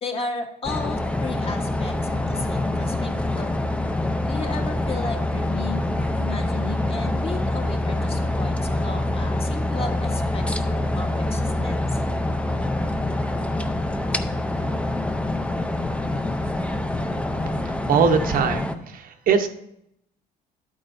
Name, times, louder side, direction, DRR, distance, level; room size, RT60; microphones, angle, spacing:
voice 1, 0.0-3.6 4.3-10.4 10.7-12.0, left 3 dB, 35° left, 3 dB, 1.3 m, -34 dB
sound 1, 0.6-18.7, left 1 dB, 5° left, 0.5 m, -25 dB
voice 2, 17.9-19.5, right 6 dB, 55° right, 6 dB, 0.8 m, -21 dB
11.0 x 8.7 x 2.6 m, 0.77 s
cardioid pair, 110°, 17 cm